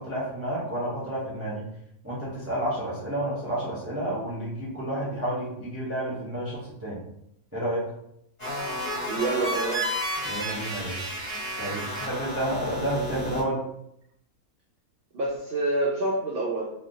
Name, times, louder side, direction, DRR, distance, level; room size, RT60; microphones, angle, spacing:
voice 1, 0.1-1.6 2.0-7.0 7.5-7.8 10.3-11.0 11.6-13.6, right 1 dB, 20° right, -7 dB, 0.4 m, -30 dB
sound 1, 8.4-13.4, equal, 30° left, 1.3 m, -31 dB
voice 2, 9.1-9.9 15.1-16.7, right 2 dB, 70° right, -3 dB, 0.6 m, -27 dB
3.3 x 2.2 x 2.6 m, 0.75 s
omnidirectional pair, 1.5 m